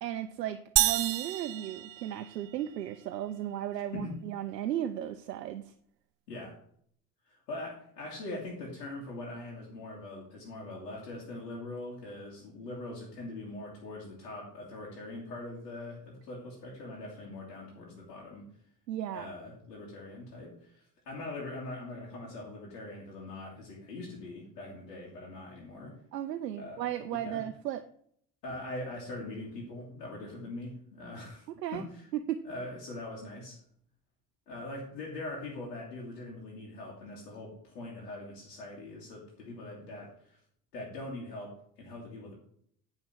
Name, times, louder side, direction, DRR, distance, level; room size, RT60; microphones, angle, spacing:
voice 1, 0.0-5.7 18.9-19.3 26.1-27.8 31.5-31.8 32.1-32.4, right 11 dB, 85° right, 9 dB, 0.6 m, -35 dB
sound 1, 0.8-2.7, right 16 dB, 45° right, 0.6 m, -29 dB
voice 2, 7.2-18.5 19.1-26.0 26.6-26.9 27.2-27.4 28.4-31.4 31.7-32.0 32.4-33.6 34.5-40.4 40.7-42.3, left 2 dB, 75° left, -5 dB, 2.5 m, -42 dB
9.7 x 4.4 x 7.5 m, 0.63 s
figure-of-eight pair, 50°, 48 cm